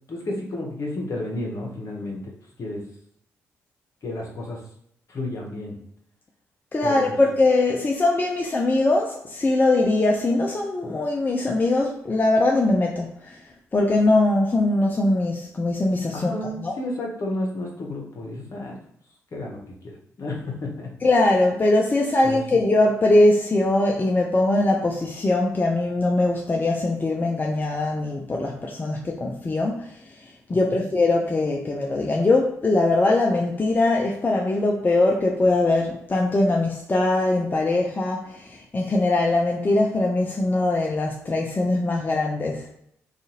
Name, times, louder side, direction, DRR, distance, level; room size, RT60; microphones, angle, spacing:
voice 1, 0.1-2.3 2.6-2.8 4.0-4.6 5.1-5.8 6.8-7.2 16.1-18.8 19.3-20.9 22.2-22.6 30.5-30.9, left 1 dB, 50° left, -1 dB, 0.9 m, -32 dB
voice 2, 6.7-13.1 13.7-16.3 16.6-16.7 21.0-29.9 30.5-38.3 38.7-42.6, left 2 dB, 25° left, 0 dB, 0.4 m, -21 dB
2.5 x 2.4 x 2.9 m, 0.72 s
hypercardioid pair, 40°, 7 cm